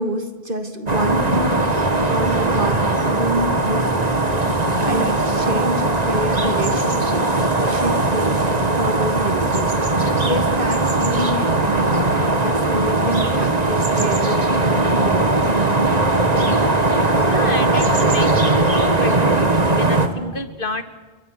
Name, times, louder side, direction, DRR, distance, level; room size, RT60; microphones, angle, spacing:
voice 1, 0.0-3.9 4.8-7.3 7.6-16.0 16.3-16.7, right 1 dB, 60° right, 6 dB, 2.8 m, -27 dB
sound 1, 0.9-20.1, right 2 dB, 40° right, 2.1 m, -19 dB
voice 2, 9.9-10.3 17.1-20.8, left 2 dB, 60° left, 8 dB, 2.3 m, -30 dB
29.5 x 24.5 x 7.0 m, 1.3 s
omnidirectional pair, 1.0 m